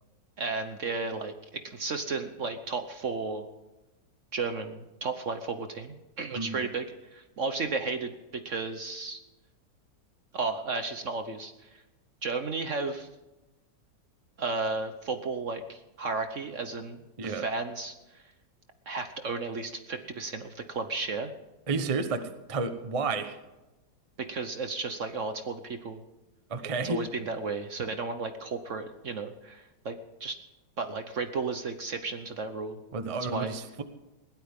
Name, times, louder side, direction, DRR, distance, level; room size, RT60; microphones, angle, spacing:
voice 1, 0.4-3.5 4.3-9.2 10.3-11.8 12.2-13.1 14.4-18.2 18.9-21.3 24.2-26.0 26.8-29.9 30.2-30.4 30.8-32.8 33.2-33.6, right 4 dB, 50° right, 8 dB, 1.1 m, -34 dB
voice 2, 21.7-22.2 22.5-23.4 26.5-27.0 32.9-33.8, right 4 dB, 25° right, 9 dB, 0.8 m, -31 dB
21.0 x 16.5 x 3.7 m, 1.0 s
omnidirectional pair, 1.9 m